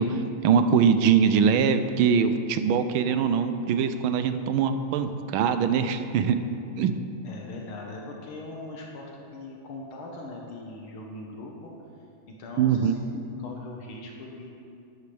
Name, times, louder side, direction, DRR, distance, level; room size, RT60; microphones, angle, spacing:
voice 1, 0.0-6.4 6.8-6.9 12.6-12.9, right 7 dB, 85° right, 9 dB, 1.5 m, -22 dB
voice 2, 7.2-11.7 12.4-14.5, left 2 dB, 90° left, -1 dB, 2.1 m, -40 dB
13.0 x 11.5 x 3.4 m, 2.5 s
omnidirectional pair, 2.2 m